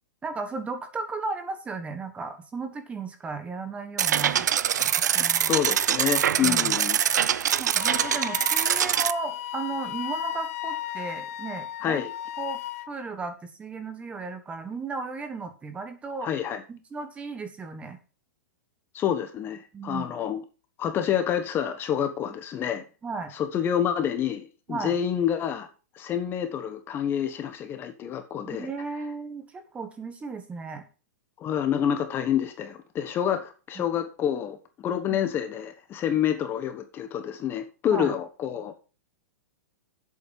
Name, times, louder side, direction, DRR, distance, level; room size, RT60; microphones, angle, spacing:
voice 1, 0.2-4.5 4.8-5.6 6.4-6.7 7.6-12.0 12.4-12.6 12.9-16.3 16.7-18.0 19.7-20.1 23.0-23.3 24.7-24.9 28.4-30.8 33.2-33.3 33.8-33.9 35.1-35.2 37.9-38.1, right 4 dB, 15° right, 1.4 m, -35 dB
sound 1, 4.0-9.1, right 9 dB, 85° right, 0.6 m, -24 dB
voice 2, 5.4-7.0 11.8-12.1 16.2-16.6 18.9-20.4 20.8-22.8 23.3-25.7 25.9-28.7 31.4-38.7, left 9 dB, 25° left, 1.2 m, -28 dB
Wind instrument woodwind instrument, 7.8-12.9, left 13 dB, 55° left, 0.6 m, -35 dB
8.5 x 7.9 x 5.4 m
hypercardioid pair, 145°, 9 cm